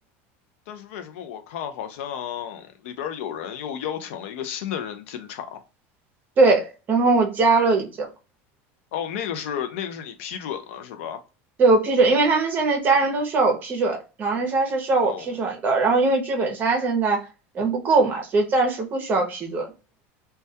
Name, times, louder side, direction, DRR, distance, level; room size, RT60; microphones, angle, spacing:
voice 1, 0.7-5.6 8.9-11.2 15.0-15.4, left 9 dB, 85° left, 0.5 m, -32 dB
voice 2, 6.4-8.1 11.6-17.2 17.5-19.7, right 3 dB, 30° right, 0.6 m, -21 dB
2.2 x 2.2 x 2.6 m
supercardioid pair, 150°, 7 cm